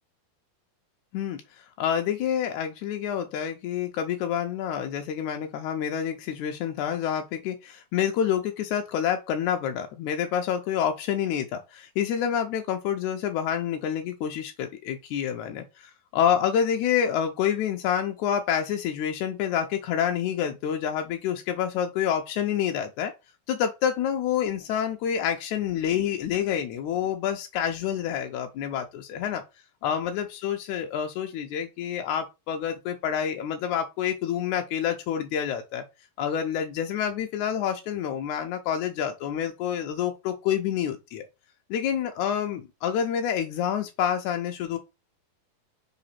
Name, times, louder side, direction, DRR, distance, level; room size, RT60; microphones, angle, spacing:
voice 1, 1.1-15.7 16.1-23.1 23.5-29.4 29.8-35.8 36.2-41.3 41.7-44.8, left 9 dB, 80° left, 1.8 m, -28 dB
5.0 x 3.8 x 5.6 m
omnidirectional pair, 4.1 m